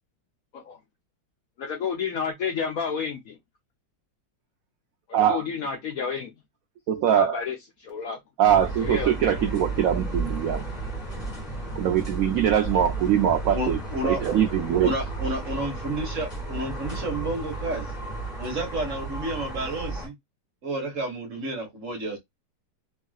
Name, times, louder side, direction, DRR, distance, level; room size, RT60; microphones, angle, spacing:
voice 1, 1.6-3.4 5.1-6.3 7.1-8.2 8.8-9.1, left 6 dB, 65° left, 0.9 m, -30 dB
voice 2, 5.1-5.4 6.9-7.4 8.4-10.6 11.7-13.8 14.0-14.9, right 9 dB, 80° right, 0.7 m, -22 dB
sound 1, 8.5-20.1, right 3 dB, 25° left, 1.5 m, -33 dB
voice 3, 13.5-14.2 14.8-17.9 18.4-20.1 20.6-22.2, right 1 dB, 50° right, 1.2 m, -31 dB
3.1 x 2.7 x 2.3 m
omnidirectional pair, 2.0 m